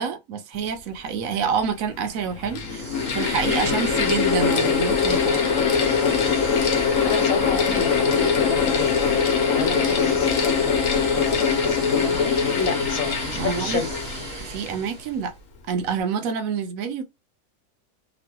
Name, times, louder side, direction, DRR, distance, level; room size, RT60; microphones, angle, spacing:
voice 1, 0.0-2.9 3.1-5.4 13.3-13.8 14.4-15.3 15.7-17.0, right 6 dB, 70° right, 1.0 m, -27 dB
Mechanical fan, 1.2-1.3 2.2-14.8, left 6 dB, 65° left, 1.1 m, -22 dB
sound 1, 2.6-15.3, right 3 dB, 35° right, 0.7 m, -34 dB
voice 2, 7.0-13.9, left 6 dB, 85° left, 1.3 m, -31 dB
3.0 x 2.4 x 2.9 m
omnidirectional pair, 1.5 m